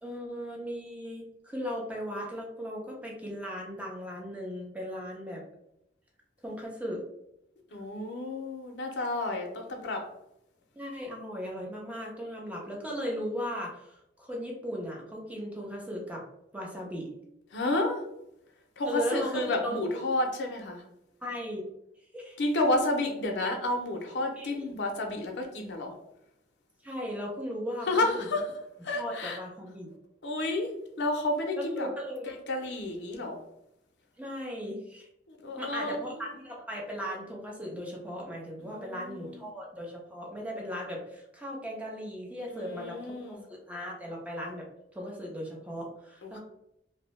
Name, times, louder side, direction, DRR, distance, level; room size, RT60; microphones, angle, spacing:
voice 1, 0.0-5.4 6.4-7.0 10.7-16.2 16.5-17.1 18.9-19.8 21.2-21.6 22.1-22.4 24.4-24.5 26.8-28.3 28.9-29.9 31.6-32.3 34.2-35.1 35.6-44.7 44.9-46.4, equal, 10° right, -2 dB, 0.6 m, -37 dB
voice 2, 7.7-10.1 17.5-18.0 18.8-20.8 22.4-25.9 27.9-28.4 28.8-29.4 30.2-30.7 31.0-31.9 32.5-33.4 35.3-36.2 38.6-39.5 42.5-43.4 46.2-46.4, left 2 dB, 85° left, 2 dB, 0.5 m, -31 dB
2.6 x 2.0 x 3.0 m, 0.82 s
head